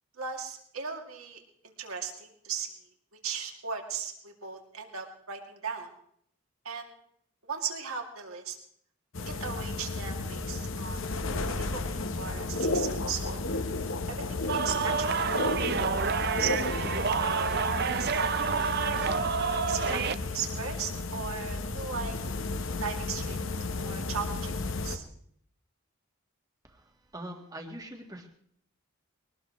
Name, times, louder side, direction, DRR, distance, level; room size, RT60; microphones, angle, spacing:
voice 1, 0.2-1.4 1.8-2.7 3.2-5.9 6.6-6.9 7.5-8.6 9.3-11.0 11.5-13.4 14.1-15.2 16.4-17.6 18.0-18.8 19.4-22.2 22.8-23.4 23.8-24.6 24.8-25.0, right 6 dB, 80° right, 2 dB, 2.5 m, -37 dB
sound 1, 9.1-25.0, left 3 dB, 65° left, 1.1 m, -33 dB
sound 2, 14.5-20.2, right 6 dB, 45° right, 0.6 m, -29 dB
voice 2, 26.6-28.3, right 1 dB, 15° right, 3 dB, 1.6 m, -43 dB
23.0 x 18.5 x 3.1 m, 0.67 s
head